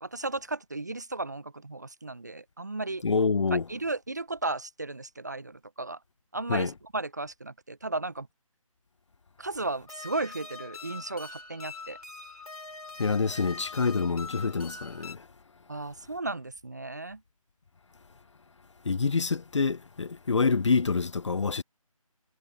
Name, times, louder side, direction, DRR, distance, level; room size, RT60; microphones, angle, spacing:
voice 1, 0.0-3.0 3.7-6.0 6.3-8.3 9.4-12.0 15.7-17.2, right 2 dB, 30° right, 0.4 m, -35 dB
voice 2, 3.0-3.6 6.5-6.7 13.0-15.3 18.8-21.6, left 4 dB, 55° left, 0.5 m, -26 dB
sound 1, 9.9-15.1, left 4 dB, 75° left, 3.1 m, -43 dB
figure-of-eight pair, 165°, 19 cm